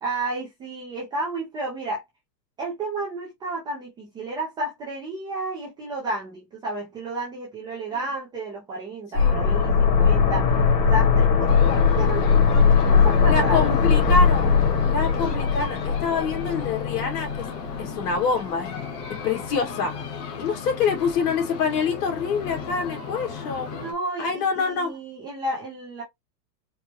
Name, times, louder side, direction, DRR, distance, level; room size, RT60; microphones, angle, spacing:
voice 1, 0.0-2.0 2.6-10.6 10.9-12.3 12.9-13.7 23.6-26.0, right 2 dB, 10° right, 0.3 m, -32 dB
sound 1, 9.2-17.9 18.1-18.2, left 6 dB, 85° left, 1.9 m, -20 dB
sound 2, 11.5-23.9, left 6 dB, 30° left, 1.0 m, -34 dB
voice 2, 13.2-17.5 17.8-18.8 19.2-20.0 20.4-23.7 24.2-24.9, left 5 dB, 70° left, 2.1 m, -26 dB
4.5 x 2.1 x 2.9 m
supercardioid pair, 155°, 49 cm